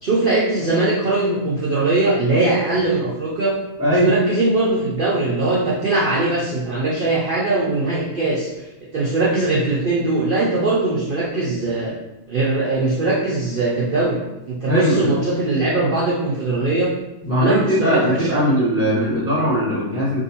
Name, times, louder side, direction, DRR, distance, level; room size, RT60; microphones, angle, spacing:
voice 1, 0.0-3.5 3.9-8.6 8.9-11.9 12.3-14.2 14.5-16.9 17.3-18.5, right 2 dB, 60° right, -6 dB, 0.5 m, -20 dB
voice 2, 3.8-4.1 14.7-15.1 17.2-20.2, equal, 20° left, -6 dB, 0.4 m, -20 dB
3.6 x 2.7 x 2.8 m, 0.94 s
omnidirectional pair, 1.6 m